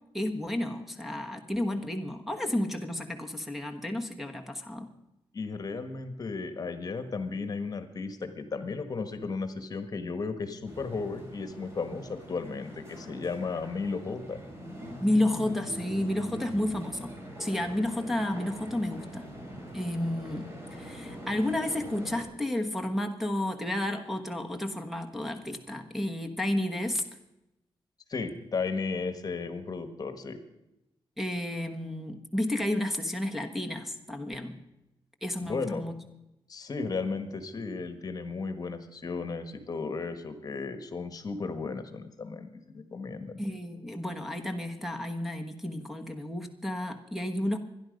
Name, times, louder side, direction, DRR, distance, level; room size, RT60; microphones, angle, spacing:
voice 1, 0.1-4.9 15.0-17.1 17.4-19.3 19.7-27.0 31.2-34.5 35.2-35.9 43.4-47.6, left 1 dB, ahead, 2 dB, 1.3 m, -31 dB
voice 2, 5.3-14.4 28.1-30.4 35.4-35.9 36.5-43.4, left 4 dB, 40° left, 9 dB, 1.5 m, -34 dB
sound 1, 10.7-22.2, equal, 25° right, 4.5 m, -43 dB
25.0 x 10.5 x 5.3 m, 0.91 s
wide cardioid pair, 115°, 9 cm